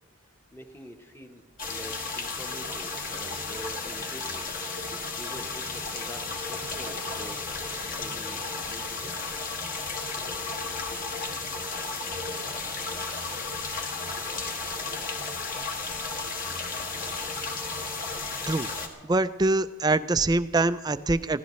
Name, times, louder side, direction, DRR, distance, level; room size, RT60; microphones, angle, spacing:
voice 1, 0.5-4.5 5.2-6.2 6.5-9.2, equal, 10° left, 4 dB, 1.0 m, -46 dB
sound 1, 1.6-18.9, left 3 dB, 40° left, 1.5 m, -33 dB
voice 2, 19.0-21.4, right 2 dB, 20° right, 13 dB, 0.3 m, -24 dB
24.5 x 16.0 x 3.1 m, 1.3 s
head